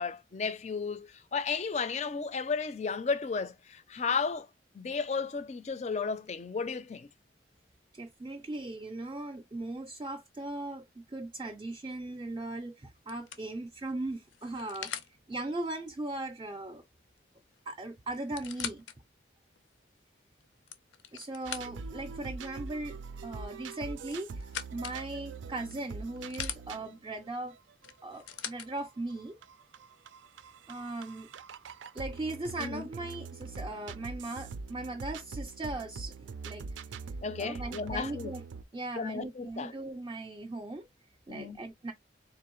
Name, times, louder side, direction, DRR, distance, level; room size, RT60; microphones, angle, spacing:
voice 1, 0.0-4.5 4.7-7.1 32.6-32.8 37.2-38.3 39.0-39.7 41.3-41.6, left 5 dB, 35° left, 0.4 m, -33 dB
voice 2, 7.9-15.0 15.3-16.8 17.7-18.8 21.1-23.0 23.2-24.4 24.7-27.6 28.0-29.4 30.7-31.3 31.9-36.6 37.4-38.4 38.7-40.9 41.3-41.9, right 2 dB, 25° right, 0.4 m, -38 dB
sound 1, 12.2-12.5 13.1-15.1 17.2-17.3 17.5-17.6 18.1-19.0 19.6-19.7 20.4-22.0 23.7-25.0 25.7-26.6 27.8-28.7 29.6-29.7, left 9 dB, 85° left, 0.5 m, -42 dB
sound 2, 21.4-38.6, right 4 dB, 85° right, 0.4 m, -43 dB
3.9 x 2.6 x 3.0 m
head